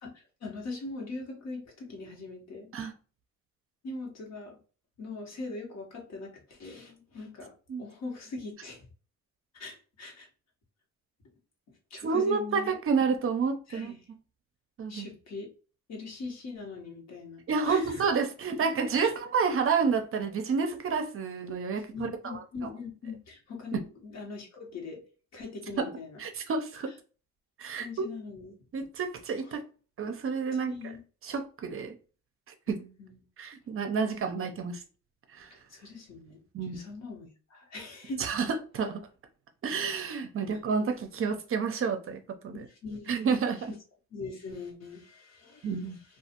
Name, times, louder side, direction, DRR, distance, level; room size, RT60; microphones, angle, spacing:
voice 1, 0.0-2.7 3.8-4.6 5.0-8.8 9.5-10.3 11.9-12.8 13.7-14.0 14.9-15.5 15.9-18.1 18.9-19.1 21.9-25.0 25.3-26.2 27.7-28.6 29.4-29.5 30.5-31.0 32.7-33.2 35.5-38.3 40.5-40.6 42.5-43.2 43.7-43.8 44.1-45.9, left 3 dB, 60° left, 1.1 m, -41 dB
voice 2, 12.0-13.9 14.8-15.1 17.5-22.7 23.7-23.8 25.8-25.9 26.2-26.9 27.6-28.1 28.7-29.6 30.0-30.7 31.2-31.9 32.7-32.8 33.4-34.8 35.3-35.5 36.5-36.8 38.2-38.5 38.7-39.0 39.6-42.6 43.1-43.7 45.6-46.0, right 5 dB, 45° right, 0.5 m, -29 dB
2.4 x 2.3 x 2.8 m
cardioid pair, 90°, 30 cm